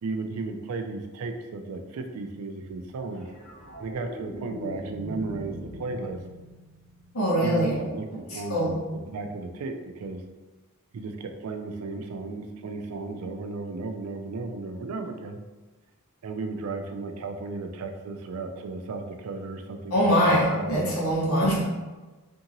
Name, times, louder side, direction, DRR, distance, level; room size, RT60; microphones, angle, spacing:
voice 1, 0.0-3.3 3.8-6.2 7.4-10.2 10.9-15.4 16.2-20.9, right 3 dB, 80° right, 6 dB, 0.4 m, -35 dB
sound 1, 3.1-7.6 10.0-10.2, equal, 35° right, 0.7 m, -41 dB
voice 2, 7.1-7.8 8.3-8.7 19.9-21.7, equal, 70° left, -4 dB, 1.0 m, -23 dB
2.8 x 2.7 x 2.6 m, 1.2 s
head